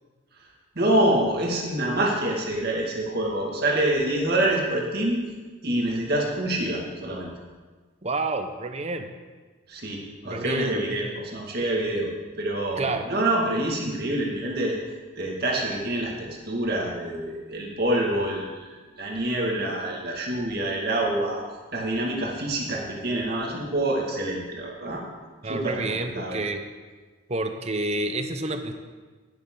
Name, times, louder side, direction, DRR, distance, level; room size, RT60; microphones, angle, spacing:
voice 1, 0.8-5.2 5.6-7.3 9.7-12.1 12.4-14.8 15.2-21.4 21.7-25.0 25.4-26.4, right 1 dB, 50° right, -2 dB, 2.1 m, -26 dB
voice 2, 8.0-9.1 10.2-11.0 12.8-13.1 25.4-26.6 27.3-28.7, right 2 dB, 30° right, 7 dB, 0.7 m, -29 dB
11.5 x 10.5 x 3.9 m, 1.4 s
head